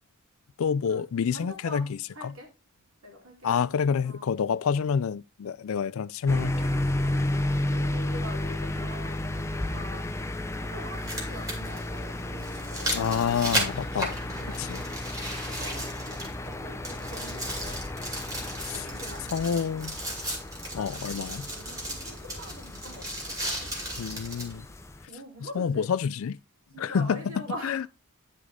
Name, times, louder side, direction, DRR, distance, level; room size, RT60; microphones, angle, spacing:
voice 1, 0.6-2.3 3.4-6.7 12.9-14.2 14.6-14.8 18.7-18.8 19.3-20.0 20.7-21.5 24.0-24.7 25.6-26.4 26.8-27.8, left 6 dB, 65° left, 0.4 m, -28 dB
voice 2, 1.3-2.5 3.0-3.5 4.0-4.3 7.0-10.2 10.5-13.1 14.0-15.0 15.5-19.6 20.8-23.7 25.1-25.9 26.7-27.9, equal, 70° right, 3.2 m, -45 dB
sound 1, 6.3-25.0, left 1 dB, 10° left, 0.5 m, -33 dB
sound 2, 9.6-9.7 10.8-16.5 16.8-24.5 25.1-25.2, right 1 dB, 15° right, 2.3 m, -35 dB
9.5 x 5.1 x 3.7 m
head